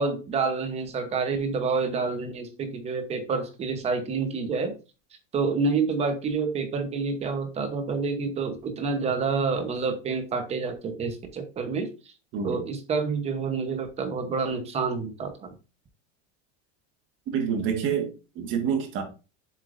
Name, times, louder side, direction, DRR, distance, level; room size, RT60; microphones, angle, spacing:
voice 1, 0.0-4.7 5.3-11.9 12.4-15.5, right 4 dB, 20° right, 0.9 m, -28 dB
voice 2, 17.3-19.0, right 7 dB, 35° right, 1.6 m, -27 dB
7.4 x 6.8 x 2.6 m
cardioid pair, 175°, 35 cm